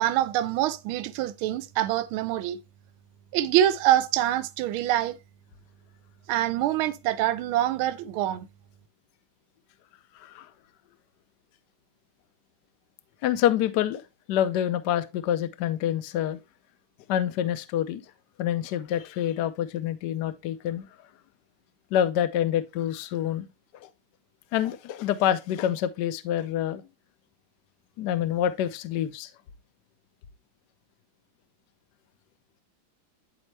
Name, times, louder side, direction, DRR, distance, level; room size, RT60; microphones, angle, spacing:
voice 1, 0.0-2.6 3.3-5.2 6.3-8.5, right 12 dB, 80° right, 1.4 m, -25 dB
voice 2, 10.1-10.5 13.2-14.0 14.3-16.4 17.1-18.0 18.4-20.9 21.9-23.5 23.8-23.9 24.5-26.8 28.0-29.3, left 11 dB, 75° left, 1.0 m, -27 dB
9.9 x 4.2 x 3.2 m
omnidirectional pair, 2.4 m